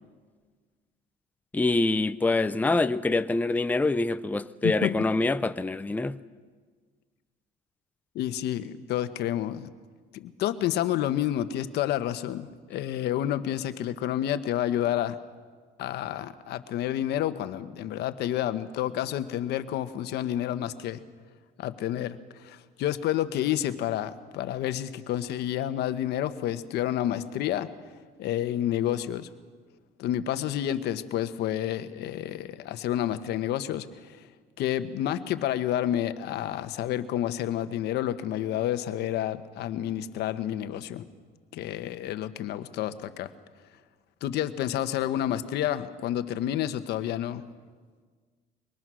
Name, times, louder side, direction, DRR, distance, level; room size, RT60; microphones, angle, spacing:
voice 1, 1.5-6.2, left 2 dB, 10° left, 0.6 m, -25 dB
voice 2, 4.6-5.0 8.1-9.7 10.1-15.2 15.8-21.0 21.6-27.7 28.2-29.3 30.0-34.3 34.6-41.0 41.5-43.3 44.2-47.4, left 12 dB, 80° left, 1.2 m, -29 dB
25.5 x 23.0 x 6.3 m
cardioid pair, 110°, 17 cm